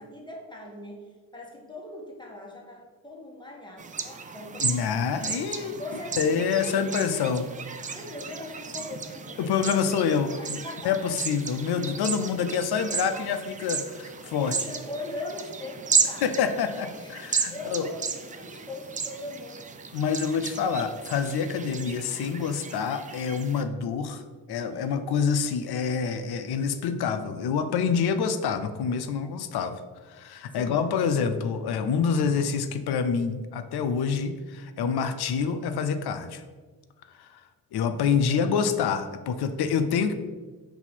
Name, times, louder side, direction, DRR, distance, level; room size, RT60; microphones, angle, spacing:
voice 1, 0.0-4.9 5.8-6.2 6.6-7.3 7.9-11.2 12.0-12.2 14.2-16.3 16.9-17.2 17.5-19.6 24.7-25.0 30.5-30.9 31.7-31.9 38.3-38.7 39.3-39.5, left 1 dB, 10° left, -2 dB, 1.3 m, -41 dB
sound 1, 3.8-23.6, right 5 dB, 20° right, 0.3 m, -34 dB
voice 2, 4.6-5.8 6.2-7.5 9.4-10.6 10.8-14.5 16.2-17.9 19.9-24.2 24.5-29.8 30.1-36.4 37.2-37.4 37.7-40.1, left 6 dB, 60° left, 9 dB, 0.5 m, -27 dB
4.3 x 2.7 x 4.3 m, 1.4 s
hypercardioid pair, 40°, 45 cm